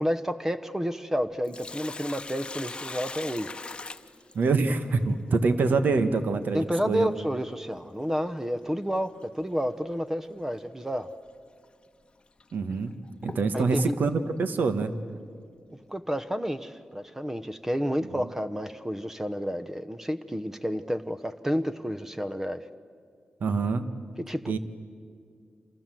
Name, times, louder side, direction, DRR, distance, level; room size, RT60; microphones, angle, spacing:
voice 1, 0.0-3.5 6.5-11.1 13.5-13.9 15.7-22.7 24.3-24.6, equal, 10° right, 10 dB, 0.9 m, -30 dB
Sink (filling or washing), 1.2-4.8 7.2-7.3 9.2-9.4 9.9-10.0 10.8-10.9 11.6-11.7 12.4-14.3, left 3 dB, 30° left, 1.0 m, -40 dB
voice 2, 4.3-7.1 12.5-13.0 13.2-14.9 18.1-18.3 23.4-23.9 24.5-24.6, right 4 dB, 75° right, 9 dB, 1.5 m, -25 dB
28.0 x 27.5 x 7.7 m, 2.2 s
wide cardioid pair, 100°, 3 cm